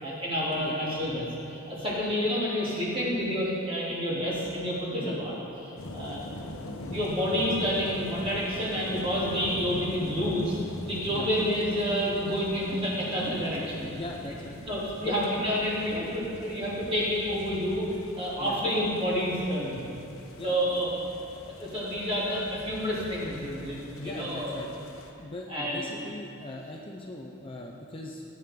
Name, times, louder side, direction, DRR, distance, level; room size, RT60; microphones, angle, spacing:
voice 1, 0.0-5.3 5.6-6.2 6.9-13.9 14.7-17.9 18.2-19.8 20.4-20.9 21.5-24.6 25.5-25.9, equal, 25° right, -7 dB, 3.0 m, -29 dB
sound 1, 5.8-25.1, left 1 dB, 85° left, 1.1 m, -42 dB
voice 2, 13.9-14.6 15.0-15.1 18.4-18.6 20.4-20.6 23.9-24.7 25.2-28.2, left 2 dB, 25° left, 0 dB, 0.6 m, -40 dB
18.5 x 9.2 x 3.8 m, 2.7 s
head